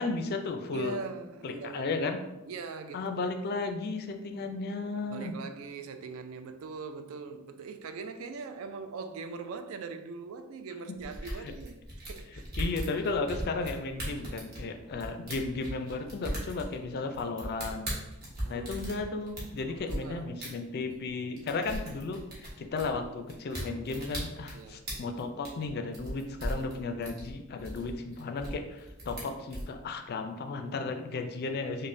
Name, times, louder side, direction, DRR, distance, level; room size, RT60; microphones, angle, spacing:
voice 1, 0.0-1.0 1.4-2.2 2.9-5.3 10.9-11.0 11.2-11.5 12.6-17.9 18.5-31.9, left 3 dB, 45° left, 0.3 m, -34 dB
voice 2, 0.7-1.9 2.5-3.2 5.1-11.8 12.1-12.7 18.4-18.7 19.7-20.3 24.5-24.9, right 5 dB, 70° right, 0.3 m, -41 dB
sound 1, 11.0-20.0 20.4-20.5 20.9-21.1 21.4-29.7, equal, 45° right, 1.2 m, -38 dB
5.3 x 2.1 x 2.5 m
head